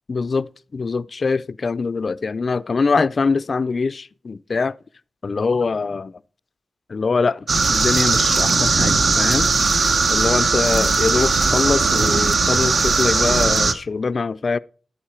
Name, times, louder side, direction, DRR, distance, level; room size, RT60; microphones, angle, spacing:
voice 1, 0.1-4.7 5.2-6.2 6.9-9.5 9.8-14.6, left 4 dB, 50° left, 0.4 m, -23 dB
sound 1, 7.5-13.7, right 4 dB, 60° right, 0.9 m, -18 dB
11.0 x 8.8 x 4.4 m
wide cardioid pair, 90°, 0 cm